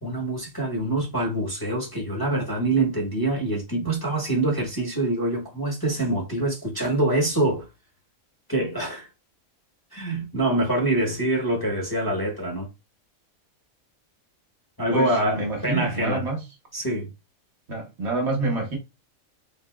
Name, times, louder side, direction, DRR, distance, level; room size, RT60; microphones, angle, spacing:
voice 1, 0.0-7.7 8.5-9.1 9.9-12.7 14.8-16.2 16.7-17.1, right 1 dB, 20° left, 0.9 m, -25 dB
voice 2, 14.9-16.4 17.7-18.8, right 2 dB, 55° right, 1.2 m, -27 dB
3.6 x 2.6 x 2.2 m
omnidirectional pair, 1.4 m